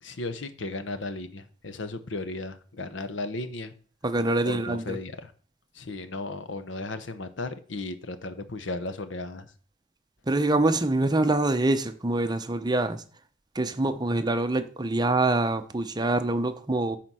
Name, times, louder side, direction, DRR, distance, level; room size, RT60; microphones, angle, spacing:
voice 1, 0.0-3.7 4.4-5.3 5.7-9.5, left 2 dB, 65° left, 0.9 m, -35 dB
voice 2, 4.0-5.0 10.3-13.0 13.6-17.0, right 2 dB, 20° right, 0.6 m, -25 dB
9.5 x 4.3 x 6.1 m
head